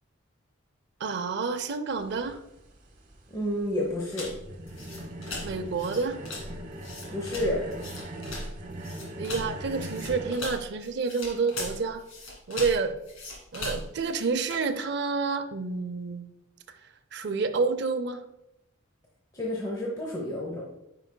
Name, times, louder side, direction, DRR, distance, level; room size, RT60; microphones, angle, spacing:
voice 1, 1.0-2.4 5.4-6.2 9.2-12.0 12.5-13.0 13.5-16.3 17.1-18.2, right 4 dB, 55° right, 9 dB, 0.5 m, -29 dB
sound 1, 1.9-10.3, right 1 dB, 40° right, 1.1 m, -40 dB
voice 2, 3.3-4.3 7.1-7.7 19.3-20.6, left 1 dB, 20° left, -3 dB, 0.9 m, -30 dB
sound 2, 4.1-14.7, left 2 dB, 75° left, 2.4 m, -39 dB
9.9 x 4.8 x 2.2 m, 0.84 s
head